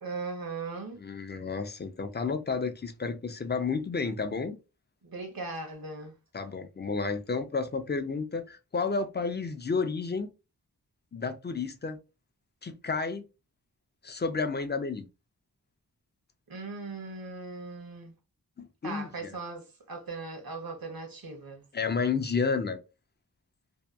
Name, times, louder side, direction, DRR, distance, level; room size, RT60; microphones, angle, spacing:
voice 1, 0.0-1.0 5.0-6.1 16.5-18.1 18.8-21.6, right 3 dB, 65° right, 0.9 m, -39 dB
voice 2, 1.0-4.6 6.3-10.3 11.1-12.0 12.6-13.2 14.0-15.1 18.6-19.4 21.7-22.8, left 4 dB, 30° left, 0.4 m, -31 dB
2.7 x 2.2 x 2.3 m
wide cardioid pair, 50°, 38 cm